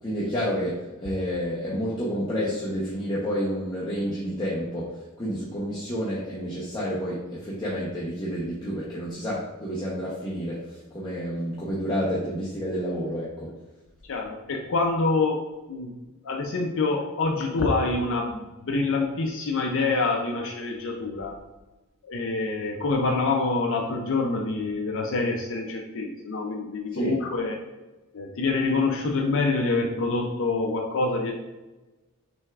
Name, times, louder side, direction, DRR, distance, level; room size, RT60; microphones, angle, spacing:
voice 1, 0.0-13.5 26.9-27.2, equal, 20° left, -7 dB, 0.8 m, -30 dB
voice 2, 14.1-15.4 15.7-15.9 16.2-21.4 22.0-27.6 28.1-31.4, left 3 dB, 60° left, 2 dB, 0.5 m, -26 dB
6.1 x 3.4 x 2.4 m, 1.1 s
head